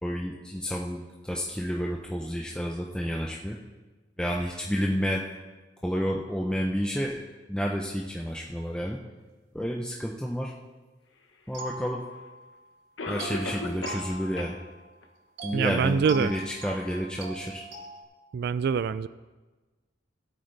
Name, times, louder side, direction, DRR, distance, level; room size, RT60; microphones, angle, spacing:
voice 1, 0.0-3.6 4.2-5.2 5.8-7.2 7.5-9.0 9.5-10.5 11.5-12.0 13.1-14.6 15.4-17.7, equal, 5° left, -1 dB, 0.7 m, -30 dB
sound 1, 11.5-12.6 13.2-14.9 15.4-18.0, right 2 dB, 85° right, 3.6 m, -41 dB
Cough, 11.9-12.0 13.0-14.1 14.4-14.5 15.0-15.1 15.7-15.8, left 3 dB, 90° left, 1.2 m, -35 dB
voice 2, 15.5-16.3 18.3-19.1, right 6 dB, 60° right, 16 dB, 0.3 m, -25 dB
17.0 x 8.2 x 3.3 m, 1.2 s
head